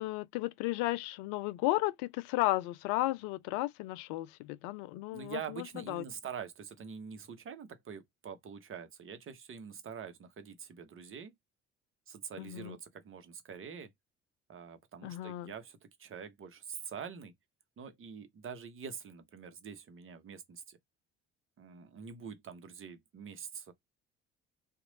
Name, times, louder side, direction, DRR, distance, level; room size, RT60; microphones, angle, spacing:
voice 1, 0.0-6.0 12.4-12.8 15.0-15.5, left 18 dB, 70° left, 0.5 m, -34 dB
voice 2, 5.1-11.3 12.1-13.9 14.5-17.3 17.8-20.8 21.6-23.7, right 7 dB, 40° right, 1.1 m, -45 dB
3.0 x 2.5 x 4.0 m
hypercardioid pair, 60°, 32 cm